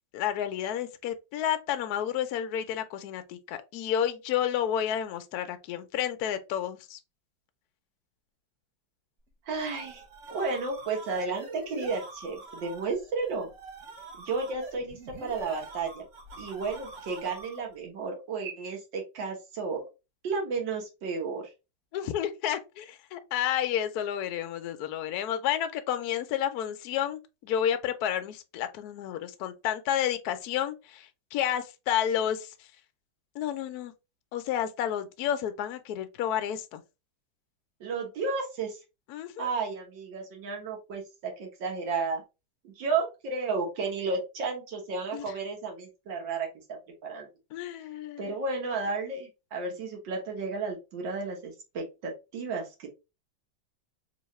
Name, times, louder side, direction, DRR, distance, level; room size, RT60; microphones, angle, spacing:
voice 1, 0.1-7.0 21.9-32.7 33.3-33.9 34.3-36.8 39.1-39.5 45.1-45.3 47.5-48.3, left 10 dB, 75° left, 0.9 m, -31 dB
sound 1, 9.3-17.8, right 3 dB, 45° right, 1.2 m, -45 dB
voice 2, 9.5-10.0 10.3-13.5 14.3-16.0 16.4-19.8 20.2-21.4 37.8-38.8 39.4-42.2 42.6-46.5 47.0-47.3 48.2-52.9, right 4 dB, 70° right, 1.8 m, -32 dB
3.9 x 2.8 x 3.1 m
omnidirectional pair, 2.1 m